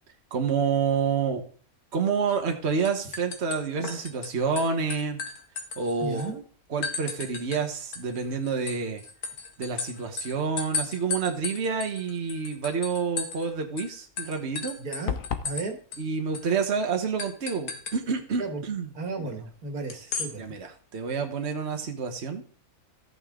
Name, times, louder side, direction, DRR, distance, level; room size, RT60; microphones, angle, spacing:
voice 1, 0.3-1.4 1.9-5.2 5.8-6.3 6.7-9.0 9.6-14.7 16.0-18.9 19.2-19.3 20.4-22.4, right 5 dB, 50° right, 4 dB, 1.5 m, -28 dB
sound 1, 2.3-2.6 2.8-4.3 4.6-6.3 6.8-7.6 7.9-13.5 13.8-13.9 14.2-15.7 15.9-16.0 16.3-16.5 17.2-18.0 19.9-20.3, left 4 dB, 85° left, 2.1 m, -35 dB
voice 2, 6.0-6.4 14.8-15.2 15.4-15.8 18.4-18.6 18.9-20.4, right 3 dB, 80° right, 5 dB, 2.3 m, -34 dB
sound 2, 15.1-15.6, left 7 dB, 65° left, 1.3 m, -30 dB
14.0 x 8.8 x 3.7 m, 0.43 s
omnidirectional pair, 1.5 m